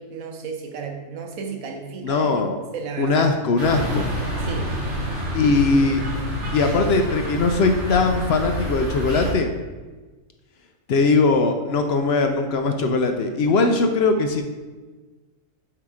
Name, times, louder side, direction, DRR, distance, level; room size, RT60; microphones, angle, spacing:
voice 1, 0.0-3.3 4.4-4.8, right 5 dB, 90° right, 4 dB, 1.3 m, -33 dB
voice 2, 2.0-2.6 3.0-4.1 5.3-6.0 6.5-9.5 10.9-14.4, left 3 dB, 65° left, 6 dB, 0.7 m, -20 dB
sound 1, 3.6-9.3, equal, 60° right, 1.8 m, -28 dB
7.5 x 2.9 x 4.8 m, 1.3 s
omnidirectional pair, 1.4 m